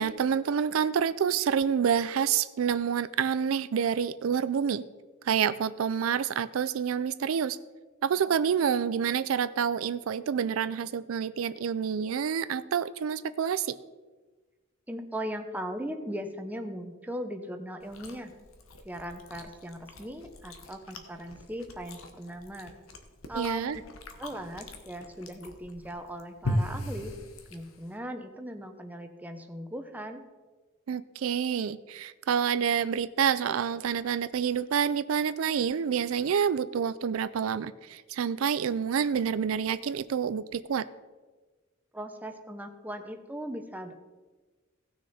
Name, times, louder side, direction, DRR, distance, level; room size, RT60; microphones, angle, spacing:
voice 1, 0.0-4.8 5.2-7.6 8.0-13.8 23.3-23.8 30.9-40.9, right 7 dB, 80° right, 15 dB, 0.4 m, -28 dB
voice 2, 14.9-18.3 18.8-22.7 23.3-23.8 24.2-27.1 27.5-30.2 41.9-43.9, equal, 10° right, 6 dB, 0.8 m, -38 dB
Chewing mastication, 17.8-28.0, left 1 dB, 80° left, 1.2 m, -39 dB
16.5 x 6.4 x 4.2 m, 1.3 s
head